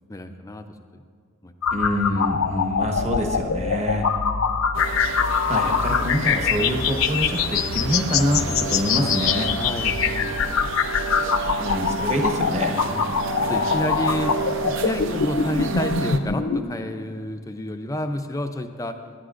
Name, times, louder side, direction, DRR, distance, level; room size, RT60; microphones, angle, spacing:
voice 1, 0.1-0.6 0.9-1.0 1.4-1.5 1.9-2.3 9.0-9.1 9.6-11.2 12.9-13.0 13.4-14.4 14.6-19.0, left 1 dB, 15° left, 7 dB, 0.4 m, -30 dB
sound 1, 1.6-16.6, left 6 dB, 70° left, 0.6 m, -24 dB
voice 2, 1.7-4.1 5.5-9.5 11.6-12.8, equal, 30° right, 2 dB, 1.2 m, -25 dB
sound 2, 4.7-16.2, right 5 dB, 60° right, 0.6 m, -31 dB
17.5 x 10.5 x 2.5 m, 2.1 s
head